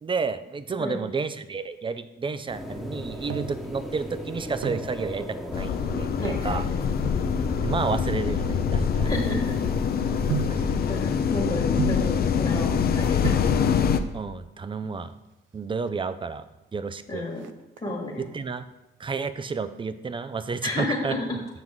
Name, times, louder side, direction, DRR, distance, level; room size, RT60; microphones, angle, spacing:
voice 1, 0.0-6.7 7.0-7.1 7.6-9.1 10.4-10.8 14.1-15.1 15.5-16.4 16.7-17.2 18.2-18.6 19.0-21.2, right 4 dB, 25° right, 13 dB, 0.5 m, -31 dB
sound 1, 2.5-11.3, equal, ahead, 1.2 m, -38 dB
sound 2, 3.3-3.7 4.4-5.0 6.2-6.6 7.3-9.7 10.3-10.7 11.8-12.2 12.9-13.0 13.2-13.6 14.7-15.3 15.6-15.7 15.9-16.0 16.4-16.8 17.1-18.1 18.6-19.0 19.4-20.5 20.8-20.9, right 10 dB, 75° right, 0.4 m, -34 dB
sound 3, 5.5-14.0, left 7 dB, 50° left, 0.6 m, -25 dB
voice 2, 6.2-7.0 9.0-9.6 10.9-13.4 17.1-17.4 17.8-18.3 20.6-21.4, left 2 dB, 25° left, 0 dB, 1.6 m, -31 dB
7.9 x 6.0 x 3.6 m, 1.0 s
cardioid pair, 90°, 20 cm